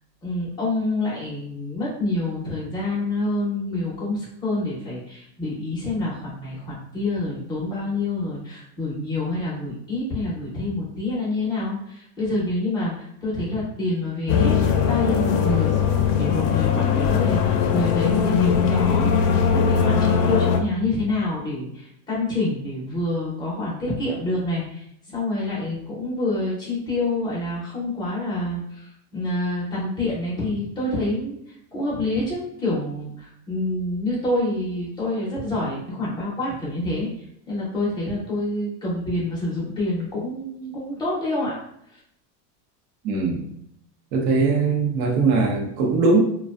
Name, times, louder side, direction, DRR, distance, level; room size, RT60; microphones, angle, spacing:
voice 1, 0.2-14.6 14.9-15.7 16.2-37.1 37.5-41.6, left 2 dB, 10° left, -7 dB, 0.5 m, -27 dB
sound 1, 14.3-20.6, left 7 dB, 70° left, 0.5 m, -20 dB
voice 2, 43.0-43.4 44.1-46.2, right 4 dB, 65° right, 0 dB, 0.8 m, -20 dB
2.5 x 2.2 x 2.3 m, 0.74 s
supercardioid pair, 155°, 48 cm